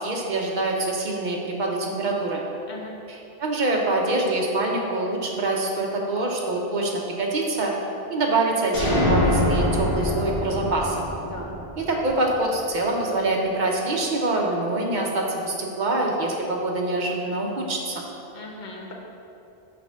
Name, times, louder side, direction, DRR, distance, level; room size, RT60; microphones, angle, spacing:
voice 1, 0.0-2.4 3.1-6.9 7.2-7.7 8.1-11.0 11.8-18.0, right 2 dB, 50° right, -1 dB, 0.9 m, -25 dB
sound 1, 8.7-12.4, left 1 dB, 85° left, 1.5 m, -24 dB
voice 2, 18.3-18.9, left 2 dB, 50° left, -1 dB, 0.9 m, -38 dB
5.9 x 5.3 x 3.6 m, 2.7 s
omnidirectional pair, 1.1 m